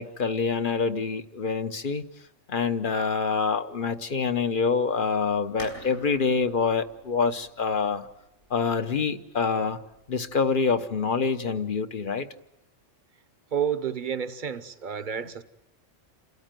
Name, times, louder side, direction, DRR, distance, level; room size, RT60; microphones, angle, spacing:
voice 1, 0.0-2.0 2.5-8.1 8.5-9.8 10.1-12.3, left 5 dB, 45° left, 1.1 m, -26 dB
sound 1, 5.6-11.1, left 1 dB, 75° left, 6.1 m, -49 dB
voice 2, 13.5-15.4, right 8 dB, 40° right, 1.0 m, -30 dB
28.5 x 13.5 x 9.1 m
omnidirectional pair, 1.3 m